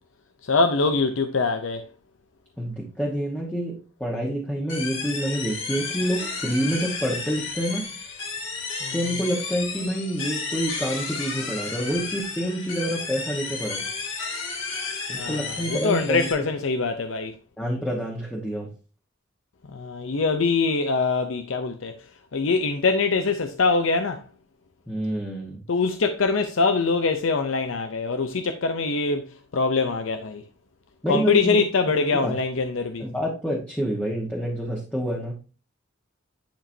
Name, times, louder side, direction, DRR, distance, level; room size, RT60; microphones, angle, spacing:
voice 1, 0.4-1.9 8.8-8.9 15.1-17.3 19.7-22.0 22.3-24.3 25.7-30.4 31.1-33.0, left 4 dB, 85° left, 0.6 m, -23 dB
voice 2, 2.6-7.9 8.9-13.9 15.1-16.4 17.6-18.7 24.9-25.6 31.0-31.6 32.1-32.4 33.0-35.4, equal, 5° left, 1.3 m, -28 dB
sound 1, 4.7-16.3, left 4 dB, 70° left, 2.5 m, -32 dB
10.5 x 5.1 x 2.7 m
head